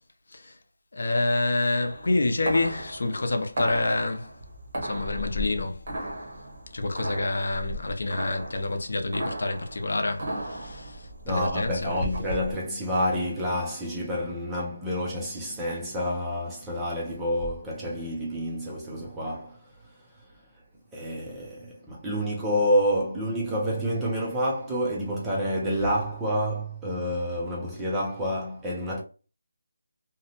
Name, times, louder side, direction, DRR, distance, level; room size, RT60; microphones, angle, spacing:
voice 1, 0.9-4.3 4.8-5.8 6.7-12.0, left 2 dB, 60° left, 0.5 m, -27 dB
sound 1, 1.8-12.6, equal, 35° right, 0.8 m, -36 dB
voice 2, 11.3-19.6 20.9-29.0, equal, 5° right, 0.4 m, -28 dB
2.7 x 2.1 x 2.7 m
figure-of-eight pair, 175°, 0 cm